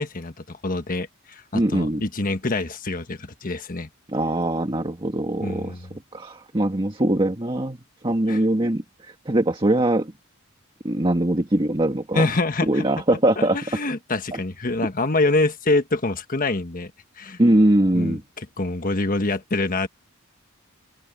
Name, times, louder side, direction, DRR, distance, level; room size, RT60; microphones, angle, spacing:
voice 1, 0.0-3.9 5.4-5.9 8.3-8.4 12.1-12.8 13.4-16.9 17.2-17.4 17.9-19.9, left 2 dB, 40° left, 1.4 m, -25 dB
voice 2, 1.5-2.0 4.1-5.8 6.1-7.8 8.0-10.1 10.8-12.3 12.7-13.6 14.3-14.4 17.4-18.2, right 1 dB, 25° right, 1.6 m, -22 dB
open air
head